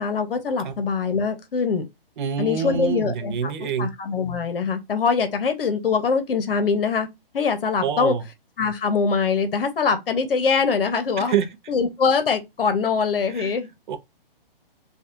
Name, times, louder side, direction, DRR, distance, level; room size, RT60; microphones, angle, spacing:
voice 1, 0.0-1.9 2.4-7.1 7.3-8.2 8.6-11.3 11.7-13.7, left 5 dB, 70° left, 1.0 m, -23 dB
voice 2, 2.2-3.9 7.8-8.2 11.2-11.5 13.3-13.5 13.9-14.0, right 8 dB, 55° right, 0.6 m, -26 dB
3.3 x 2.4 x 2.7 m
hypercardioid pair, 145°, 29 cm